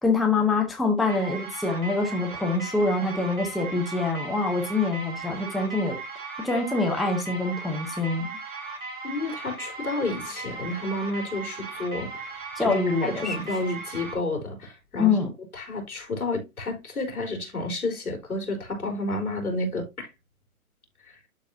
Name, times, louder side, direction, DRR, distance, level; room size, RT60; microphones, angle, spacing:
voice 1, 0.0-6.0 6.4-8.3 12.6-13.5 15.0-15.3, left 3 dB, ahead, 0.6 m, -25 dB
sound 1, 1.1-14.2, right 3 dB, 20° right, 2.1 m, -37 dB
voice 2, 9.0-12.3 12.6-15.2 15.5-20.1 21.1-21.2, left 2 dB, 90° left, 3.7 m, -31 dB
12.0 x 3.9 x 2.6 m
hypercardioid pair, 135°, 43 cm